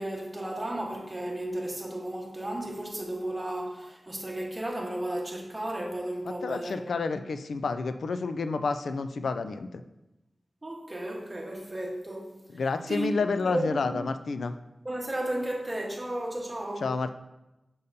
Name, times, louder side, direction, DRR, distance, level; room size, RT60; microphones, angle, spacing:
voice 1, 0.0-6.8 7.1-7.2 10.6-12.4 12.9-13.9 14.8-16.9, right 1 dB, 25° right, 0 dB, 1.2 m, -34 dB
voice 2, 6.4-9.8 12.5-14.5 16.8-17.1, left 4 dB, 85° left, 10 dB, 0.3 m, -29 dB
6.6 x 5.4 x 2.7 m, 0.96 s
wide cardioid pair, 65°, 0 cm